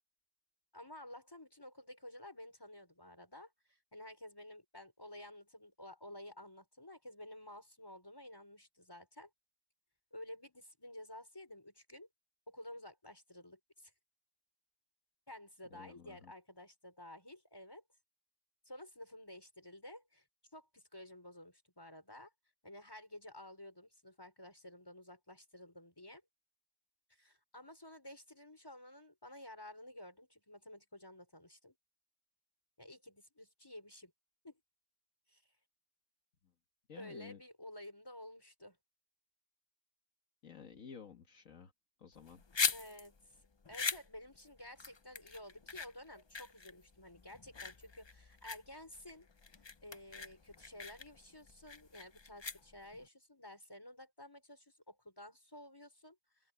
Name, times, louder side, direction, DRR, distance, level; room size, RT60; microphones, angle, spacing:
voice 1, 0.7-9.3 10.1-12.1 12.5-13.9 15.3-17.8 18.7-20.2 20.5-22.3 22.6-26.2 27.1-31.7 32.8-34.1 34.4-34.6 35.3-35.4 36.9-38.8 42.7-43.2 43.7-49.3 49.8-56.5, left 1 dB, 15° left, 5.3 m, -52 dB
voice 2, 15.7-16.3 36.9-37.4 40.4-41.7 42.0-42.4, left 7 dB, 75° left, 1.9 m, -53 dB
sound 1, 42.1-53.1, left 4 dB, 30° left, 0.5 m, -41 dB
open air
omnidirectional pair, 1.4 m